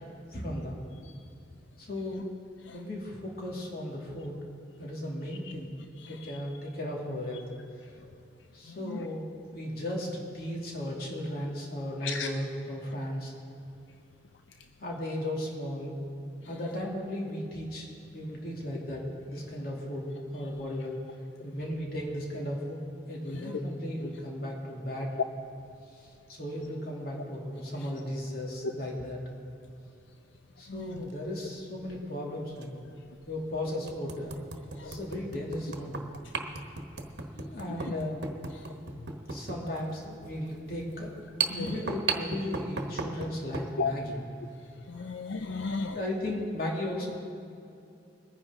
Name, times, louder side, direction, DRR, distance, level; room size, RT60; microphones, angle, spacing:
voice 1, 0.3-0.9 1.8-2.2 2.7-4.4 4.8-5.7 6.1-7.4 8.5-13.3 14.8-16.0 16.4-17.9 18.1-21.0 21.4-22.8 23.1-25.1 25.9-29.2 30.6-32.8 33.2-34.4 34.8-36.0 37.3-38.2 39.3-44.2 44.9-45.1 45.9-47.2, left 1 dB, 55° left, -2 dB, 2.7 m, -36 dB
voice 2, 8.7-9.1 12.0-12.3 23.3-23.6 27.8-27.9 28.6-28.7 30.7-31.0 34.8-35.0 37.8-37.9 38.6-39.1 41.5-41.8 43.8-43.9 44.9-46.0, left 4 dB, 90° left, 7 dB, 0.5 m, -36 dB
sound 1, 30.9-31.1 32.6-32.7 33.2-33.3 33.9-43.7, right 4 dB, 70° right, 1.2 m, -36 dB
22.5 x 9.8 x 3.7 m, 2.6 s
head